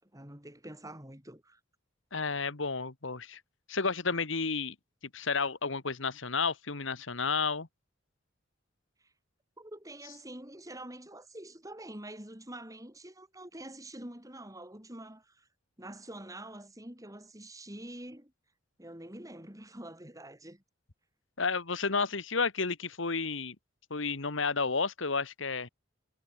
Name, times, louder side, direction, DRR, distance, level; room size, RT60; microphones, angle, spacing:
voice 1, 0.0-1.6 9.6-15.5 15.8-18.3 18.8-20.6, right 1 dB, 15° right, 6.2 m, -46 dB
voice 2, 2.1-3.4 3.7-4.7 5.1-7.7 21.4-23.5 23.9-25.7, left 4 dB, 70° left, 1.7 m, -31 dB
head